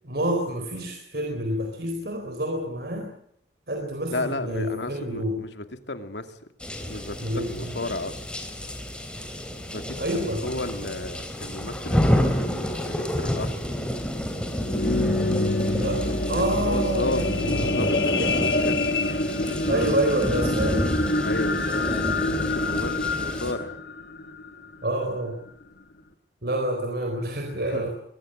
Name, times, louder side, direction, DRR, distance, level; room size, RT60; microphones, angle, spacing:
voice 1, 0.0-3.1 3.7-5.4 7.2-7.7 10.0-10.4 15.7-17.8 18.2-18.7 19.7-21.0 24.8-25.4 26.4-27.9, right 1 dB, 60° right, 4 dB, 4.0 m, -28 dB
voice 2, 4.1-6.5 6.8-8.3 9.7-10.0 10.4-13.5 16.4-18.8 19.1-19.9 21.2-21.9 22.4-23.7 27.5-27.9, left 2 dB, 90° left, 8 dB, 2.4 m, -33 dB
sound 1, 6.6-23.5, equal, 5° left, 3.5 m, -30 dB
sound 2, 14.4-24.9 25.5-25.6, left 2 dB, 65° left, 2.1 m, -26 dB
23.0 x 20.0 x 7.9 m, 0.72 s
head